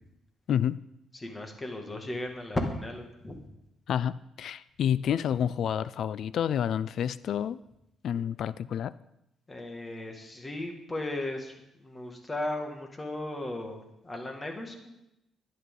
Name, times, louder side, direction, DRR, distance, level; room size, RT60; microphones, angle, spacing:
voice 1, 0.5-0.8 3.9-7.6 8.0-8.9, left 9 dB, 70° left, 17 dB, 0.3 m, -29 dB
voice 2, 1.1-3.4 9.5-15.1, left 1 dB, 20° left, 3 dB, 2.0 m, -36 dB
11.0 x 10.5 x 3.8 m, 0.86 s
cardioid pair, 90°, 0 cm